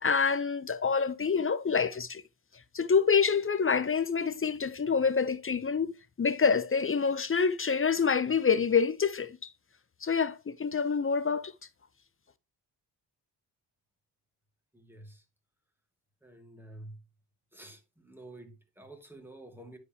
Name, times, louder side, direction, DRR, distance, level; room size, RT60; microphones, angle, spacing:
voice 1, 0.0-2.2 2.7-5.9 6.2-9.4 10.0-11.5, left 5 dB, 30° left, 0.7 m, -27 dB
voice 2, 14.7-15.2 16.2-17.0 17.5-19.8, right 1 dB, 5° right, 2.1 m, -49 dB
9.7 x 5.0 x 2.9 m
cardioid pair, 65°, 43 cm